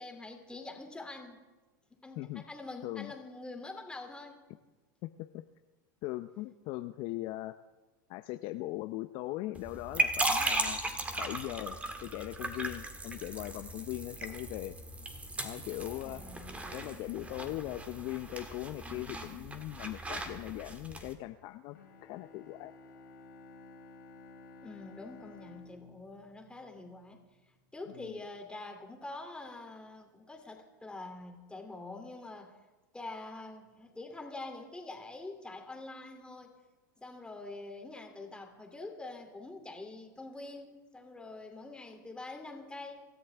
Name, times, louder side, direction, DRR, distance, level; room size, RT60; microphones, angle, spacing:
voice 1, 0.0-1.4 2.0-4.4 15.9-16.7 24.6-27.2 27.7-32.5 32.9-36.6 37.0-43.0, left 2 dB, 10° left, 3 dB, 2.8 m, -45 dB
voice 2, 6.0-7.6 8.1-10.8 11.2-14.8 15.4-16.2 16.7-21.8 22.0-22.7 27.9-28.2, left 17 dB, 50° left, 9 dB, 0.6 m, -40 dB
sound 1, 9.6-21.1, right 2 dB, 10° right, 2.0 m, -37 dB
Bowed string instrument, 21.7-27.2, left 3 dB, 85° left, 4.3 m, -54 dB
26.0 x 13.5 x 3.5 m, 1.2 s
hypercardioid pair, 110°, 11 cm